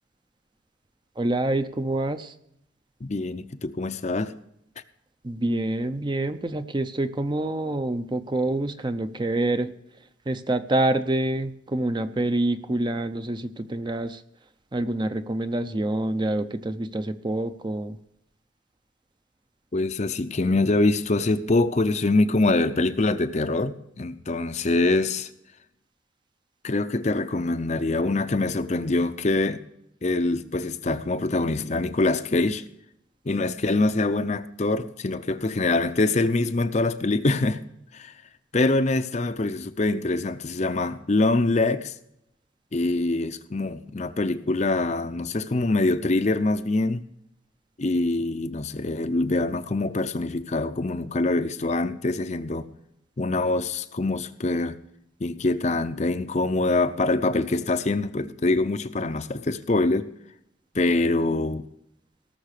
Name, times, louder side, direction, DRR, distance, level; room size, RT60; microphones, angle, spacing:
voice 1, 1.2-2.3 5.2-9.7 10.3-14.2 14.7-18.0, right 1 dB, 20° right, 0.6 m, -26 dB
voice 2, 3.0-4.3 19.7-25.3 26.6-29.6 30.0-32.6 33.3-37.6 37.9-38.1 38.5-41.9 42.7-47.0 47.8-52.7 53.2-54.8 55.2-60.1 60.7-61.6, left 2 dB, 35° left, 0.6 m, -24 dB
18.0 x 6.7 x 6.6 m
head